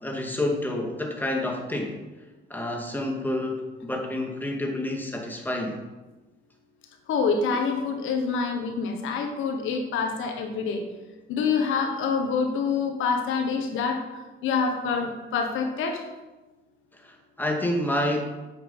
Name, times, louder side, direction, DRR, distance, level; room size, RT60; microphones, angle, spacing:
voice 1, 0.0-2.0 2.5-5.8 17.0-18.2, left 1 dB, 10° left, 1 dB, 2.2 m, -28 dB
voice 2, 7.1-10.8 11.3-16.1, left 5 dB, 85° left, 5 dB, 1.4 m, -26 dB
9.3 x 7.3 x 5.6 m, 1.1 s
cardioid pair, 90°, 20 cm